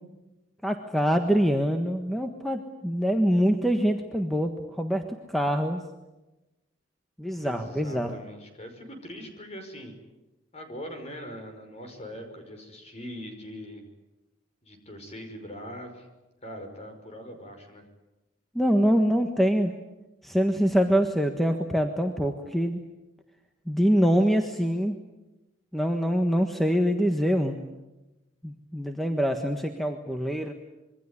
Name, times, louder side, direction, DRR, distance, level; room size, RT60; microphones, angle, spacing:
voice 1, 0.6-5.0 5.3-5.8 7.2-8.2 18.5-19.7 20.2-22.8 23.7-25.0 25.7-27.6 28.4-30.5, equal, ahead, 4 dB, 1.4 m, -24 dB
voice 2, 7.4-9.9 10.5-13.8 14.6-16.1 16.4-17.8, equal, 35° left, 6 dB, 5.5 m, -41 dB
26.5 x 23.0 x 9.8 m, 1.0 s
head